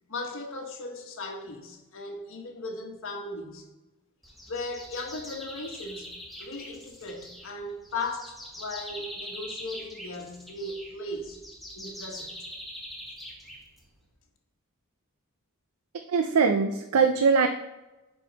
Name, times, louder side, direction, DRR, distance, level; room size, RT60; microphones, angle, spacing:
voice 1, 0.1-3.7 4.5-6.1 6.4-11.4 11.7-12.3, left 2 dB, 60° left, 1.4 m, -37 dB
sound 1, 4.2-14.1, equal, ahead, 1.4 m, -43 dB
voice 2, 16.1-17.5, right 5 dB, 75° right, 0.5 m, -22 dB
10.0 x 4.6 x 4.0 m
head